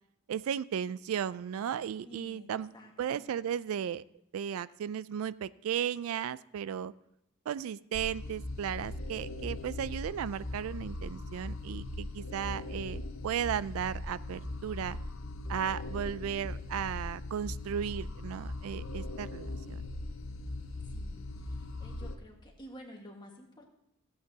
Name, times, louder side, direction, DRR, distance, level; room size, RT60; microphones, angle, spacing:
voice 1, 0.3-2.7 3.0-4.0 4.3-6.9 7.5-15.0 15.5-19.8, right 8 dB, 80° right, 19 dB, 0.3 m, -35 dB
voice 2, 2.0-2.5 2.7-3.2 20.8-23.6, equal, 20° left, 1 dB, 1.5 m, -51 dB
sound 1, 7.9-22.2, left 2 dB, 65° left, 0.8 m, -40 dB
15.0 x 8.1 x 2.8 m, 0.80 s
head